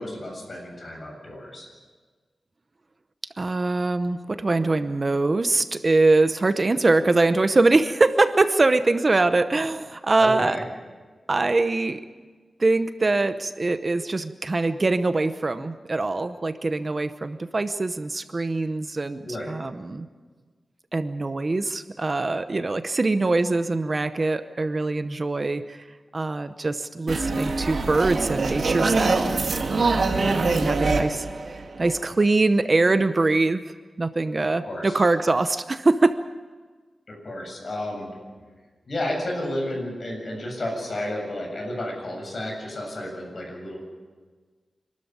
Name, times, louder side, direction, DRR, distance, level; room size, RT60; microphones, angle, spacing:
voice 1, 0.0-1.7 10.2-10.6 19.2-19.5 30.6-31.0 34.6-35.0 37.1-38.1 38.9-43.8, left 1 dB, 50° left, 0 dB, 7.6 m, -32 dB
voice 2, 3.4-10.6 11.3-12.0 12.6-20.1 20.9-25.8 26.1-33.6 34.0-36.2, right 3 dB, 35° right, 10 dB, 0.8 m, -23 dB
sound 1, 27.1-32.2, right 3 dB, 70° right, 2.0 m, -24 dB
26.5 x 13.0 x 9.5 m, 1.4 s
wide cardioid pair, 120°, 0 cm